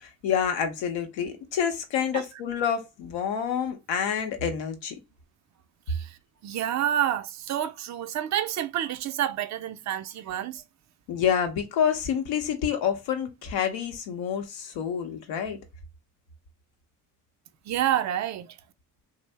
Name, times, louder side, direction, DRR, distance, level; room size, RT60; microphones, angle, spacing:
voice 1, 0.0-4.9 11.1-15.6, left 8 dB, 85° left, 0.7 m, -28 dB
voice 2, 5.9-6.2 6.4-10.6 17.7-18.6, right 11 dB, 40° right, 0.4 m, -28 dB
2.7 x 2.1 x 3.2 m
supercardioid pair, 55°, 44 cm